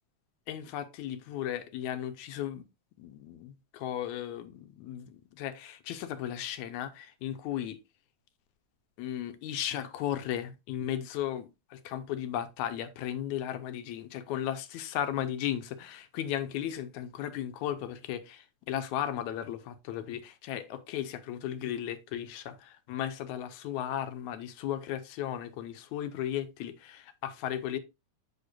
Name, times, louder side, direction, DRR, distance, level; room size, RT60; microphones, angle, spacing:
voice 1, 0.5-2.6 3.0-7.8 9.0-27.8, left 11 dB, 85° left, 2.1 m, -35 dB
8.5 x 6.6 x 2.5 m
omnidirectional pair, 3.3 m